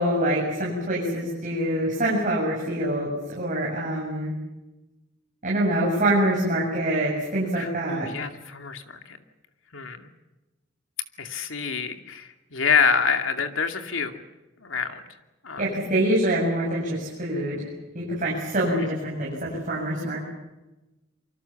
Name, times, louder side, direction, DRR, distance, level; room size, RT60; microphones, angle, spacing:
voice 1, 0.0-4.3 5.4-8.1 15.6-17.7 17.9-20.3, right 1 dB, 40° right, -4 dB, 7.4 m, -25 dB
voice 2, 7.6-9.2 9.7-10.1 11.2-14.2 14.6-15.0 15.4-15.6 18.7-18.8, left 6 dB, 90° left, 6 dB, 2.5 m, -27 dB
27.5 x 25.0 x 7.2 m, 1.0 s
head